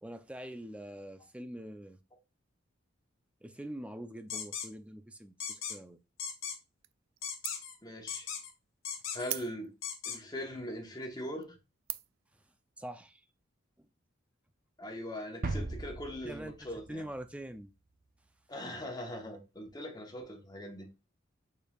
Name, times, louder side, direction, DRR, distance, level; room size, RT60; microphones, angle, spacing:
voice 1, 0.0-2.0 3.4-6.0 12.3-12.4 12.8-13.2 13.8-13.9 16.2-16.5 16.9-17.7, right 1 dB, 5° right, 0.4 m, -44 dB
sound 1, 4.3-4.7 5.4-5.8 6.2-6.6 7.2-7.7 8.1-8.5 8.8-9.3 9.8-10.2, left 7 dB, 85° left, 1.0 m, -38 dB
sound 2, 6.8-7.2 7.4-7.8 8.2-8.3 9.2-9.9 10.6-10.7 11.2-11.4 11.9-12.3, right 15 dB, 90° right, 0.3 m, -40 dB
voice 2, 7.8-8.3 9.1-9.7 10.1-11.6 14.8-17.0 18.5-20.9, equal, 20° left, 1.1 m, -41 dB
sound 3, 15.4-17.3 17.6-17.7, right 2 dB, 45° right, 0.7 m, -38 dB
5.2 x 4.4 x 2.3 m
head